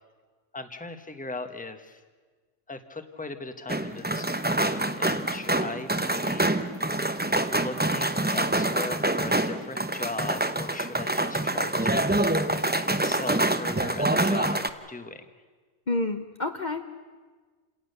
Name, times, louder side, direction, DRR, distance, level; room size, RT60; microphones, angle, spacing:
voice 1, 0.5-2.0 2.7-6.5 7.4-12.3 12.9-15.3, left 3 dB, 5° left, 8 dB, 1.1 m, -38 dB
sound 1, 3.7-14.7, right 1 dB, 10° right, 0.7 m, -26 dB
voice 2, 15.9-16.8, left 2 dB, 40° left, 6 dB, 1.0 m, -29 dB
28.5 x 18.0 x 6.7 m, 1.4 s
omnidirectional pair, 1.3 m